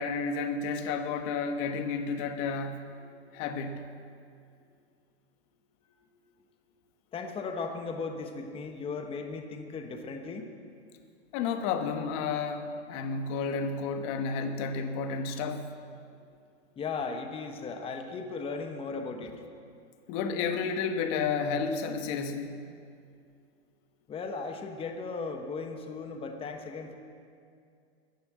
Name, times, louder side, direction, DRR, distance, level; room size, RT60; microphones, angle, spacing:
voice 1, 0.0-2.9 3.3-3.9 11.3-15.6 20.1-22.6, left 5 dB, 40° left, 7 dB, 1.3 m, -31 dB
voice 2, 7.1-10.5 16.8-19.4 24.1-26.9, left 4 dB, 15° left, 5 dB, 1.2 m, -37 dB
14.0 x 10.0 x 8.0 m, 2.4 s
hypercardioid pair, 125°, 34 cm